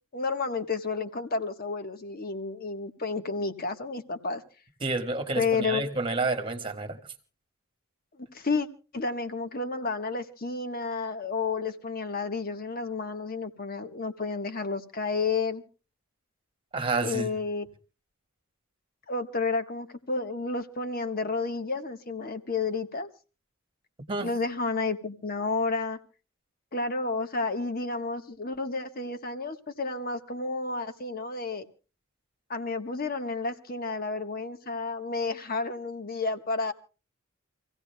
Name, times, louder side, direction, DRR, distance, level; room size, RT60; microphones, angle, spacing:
voice 1, 0.1-4.4 5.3-5.9 8.3-8.7 8.9-15.6 17.0-17.6 19.1-23.1 24.2-26.0 26.7-31.7 32.5-36.7, left 4 dB, 45° left, 1.2 m, -31 dB
voice 2, 4.8-7.0 16.7-17.3 24.1-24.3, right 3 dB, 25° right, 1.6 m, -29 dB
27.0 x 16.0 x 2.2 m
head